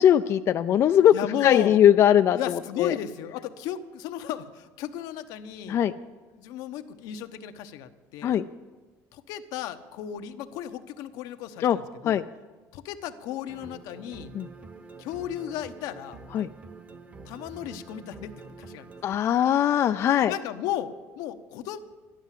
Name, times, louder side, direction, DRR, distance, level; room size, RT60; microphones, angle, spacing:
voice 1, 0.0-1.1 1.4-2.9 5.7-5.9 8.2-8.4 11.6-11.8 12.0-12.2 14.3-14.5 16.3-16.5 19.0-20.3, left 10 dB, 45° left, 9 dB, 0.4 m, -20 dB
voice 2, 1.1-1.8 2.3-5.8 6.3-8.3 9.1-12.2 12.7-14.3 15.0-16.2 17.2-18.9 20.3-21.8, left 11 dB, 75° left, 9 dB, 0.9 m, -34 dB
sound 1, 13.5-19.2, right 3 dB, 20° right, 1.0 m, -46 dB
12.5 x 11.5 x 7.4 m, 1.3 s
cardioid pair, 140°, 7 cm